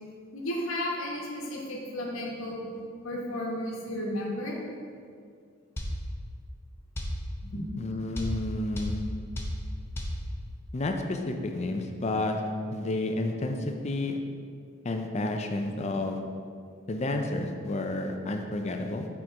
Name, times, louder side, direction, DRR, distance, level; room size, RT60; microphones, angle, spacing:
voice 1, 0.3-2.6 3.0-4.6 7.4-7.6, left 1 dB, 85° left, -3 dB, 1.2 m, -33 dB
sound 1, 5.8-6.0 7.0-7.2 8.2-8.4 8.8-9.0 9.4-9.6 10.0-10.2, equal, 10° left, 0.8 m, -32 dB
voice 2, 7.8-9.0 10.7-12.4 12.7-14.2 14.8-16.2 16.9-19.1, left 2 dB, 35° left, 4 dB, 0.4 m, -30 dB
6.5 x 4.3 x 4.6 m, 2.2 s
head